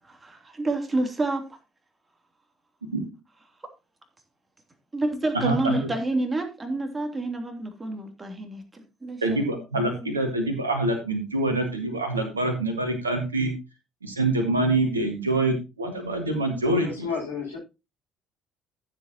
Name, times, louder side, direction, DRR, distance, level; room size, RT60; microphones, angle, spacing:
voice 1, 0.0-1.5 4.9-10.2, right 2 dB, 20° right, 4 dB, 3.1 m, -29 dB
voice 2, 5.3-5.9 9.2-13.5 14.0-17.1, right 2 dB, 85° right, 5 dB, 1.9 m, -25 dB
voice 3, 16.8-17.6, left 5 dB, 80° left, -6 dB, 6.1 m, -31 dB
14.0 x 8.4 x 3.0 m, 0.27 s
figure-of-eight pair, 50°, 0 cm